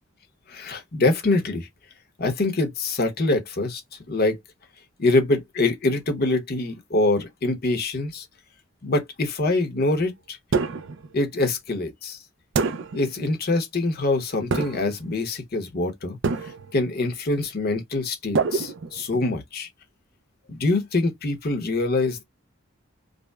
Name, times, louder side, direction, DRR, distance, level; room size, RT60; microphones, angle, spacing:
voice 1, 0.5-1.7 2.2-3.8 4.1-4.4 5.0-8.2 8.8-10.4 11.1-12.2 12.9-19.7 20.5-22.2, left 2 dB, 50° left, 0.9 m, -24 dB
sound 1, 10.5-11.1 12.5-13.1 14.5-15.0 16.2-16.8 18.3-19.3, right 4 dB, 60° right, 0.4 m, -26 dB
5.0 x 2.1 x 2.3 m
head